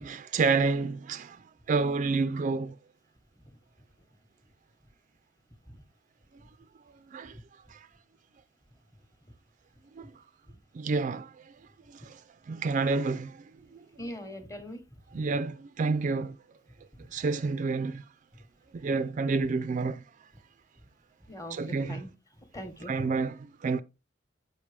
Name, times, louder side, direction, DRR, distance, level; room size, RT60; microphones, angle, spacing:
voice 1, 0.0-2.8 7.1-7.4 7.7-7.9 9.9-10.1 10.7-11.6 11.9-13.8 15.1-16.4 17.1-18.1 18.7-20.0 21.5-22.0 22.9-23.8, right 4 dB, 40° right, 0.3 m, -29 dB
voice 2, 14.0-14.8 21.3-22.1 22.5-23.1, equal, 15° left, 1.0 m, -41 dB
7.2 x 5.5 x 3.3 m
head